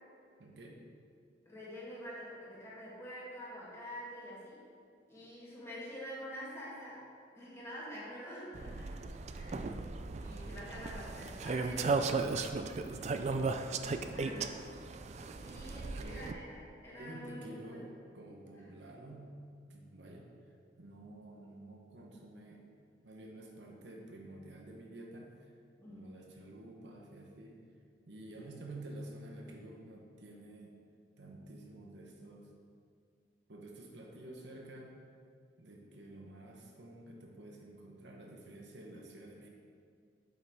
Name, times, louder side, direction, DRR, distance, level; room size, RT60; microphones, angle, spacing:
voice 1, 0.4-0.8 11.6-13.0 13.7-14.5 15.6-16.3 17.0-19.3 19.7-20.3 20.8-22.7 23.0-25.5 25.9-27.6 28.1-30.8 31.2-32.5 33.5-34.9 35.6-39.5, right 1 dB, 70° right, 0 dB, 1.0 m, -50 dB
voice 2, 1.5-4.6 5.1-7.1 7.4-9.0 9.3-9.7 10.2-12.1 14.0-14.4 15.4-17.8 18.6-18.7 25.8-26.1, equal, 15° left, -7 dB, 2.0 m, -46 dB
sound 1, 8.5-16.3, right 4 dB, 40° right, 0.3 m, -36 dB
8.0 x 5.7 x 4.6 m, 2.3 s
head